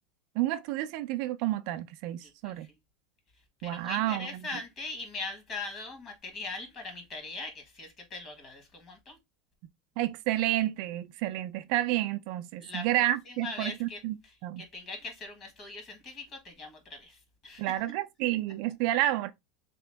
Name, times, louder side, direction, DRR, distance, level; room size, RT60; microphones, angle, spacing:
voice 1, 0.4-2.7 3.6-4.3 10.0-14.2 14.4-14.6 17.6-19.3, right 14 dB, 55° right, 0.3 m, -30 dB
voice 2, 2.2-2.7 3.6-9.2 12.6-17.7, left 3 dB, 30° left, 1.4 m, -41 dB
3.5 x 2.9 x 3.4 m
supercardioid pair, 155°, 0 cm